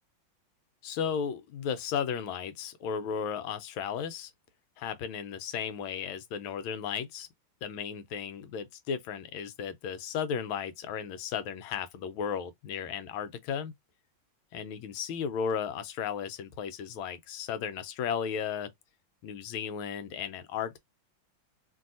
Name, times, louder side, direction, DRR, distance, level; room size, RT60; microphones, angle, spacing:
voice 1, 0.8-4.3 4.8-7.3 7.6-13.7 14.5-18.7 19.2-20.8, left 7 dB, 90° left, 1.4 m, -35 dB
3.2 x 2.7 x 2.6 m
omnidirectional pair, 2.2 m